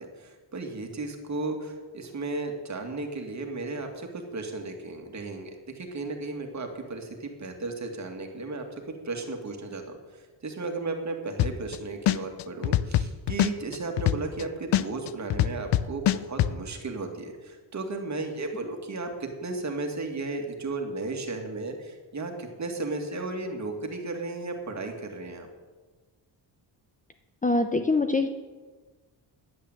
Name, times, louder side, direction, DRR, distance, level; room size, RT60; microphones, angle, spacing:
voice 1, 0.0-10.0 10.4-25.5, right 3 dB, 35° right, 3 dB, 2.3 m, -34 dB
sound 1, 11.4-11.8 12.1-14.4 14.7-16.5, left 12 dB, 65° left, 0.6 m, -23 dB
voice 2, 27.4-28.3, left 3 dB, 15° left, 7 dB, 0.7 m, -23 dB
11.0 x 8.8 x 9.0 m, 1.3 s
cardioid pair, 120°, 46 cm